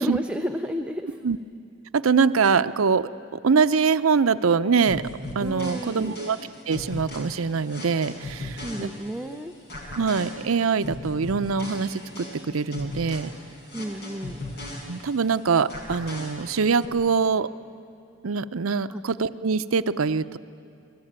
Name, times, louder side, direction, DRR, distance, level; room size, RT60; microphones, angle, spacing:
voice 1, 0.0-1.2 5.4-6.2 8.6-9.5 13.7-14.4 18.9-19.0, equal, 5° right, 5 dB, 0.6 m, -31 dB
voice 2, 1.9-3.1 3.4-5.0 5.4-6.4 6.7-8.9 10.0-13.3 14.9-17.5 18.2-20.4, right 5 dB, 85° right, 13 dB, 0.6 m, -23 dB
sound 1, 4.9-9.3 9.7-15.3 15.7-16.9, left 1 dB, 55° left, 5.3 m, -38 dB
28.0 x 20.5 x 8.9 m, 2.6 s
head